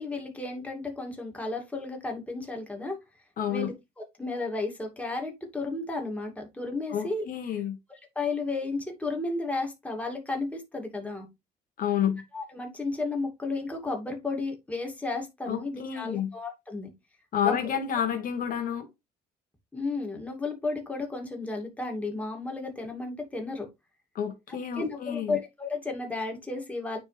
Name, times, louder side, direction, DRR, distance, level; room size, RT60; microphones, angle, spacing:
voice 1, 0.0-3.0 3.5-3.7 4.2-7.2 8.2-11.3 12.3-16.9 17.4-17.5 19.7-23.7 24.8-27.0, left 3 dB, 10° left, 2.3 m, -33 dB
voice 2, 3.4-3.7 6.9-7.8 11.8-12.2 15.5-16.3 17.3-18.9 24.1-25.4, left 9 dB, 55° left, 1.2 m, -29 dB
9.4 x 3.5 x 3.2 m
cardioid pair, 110°, 17 cm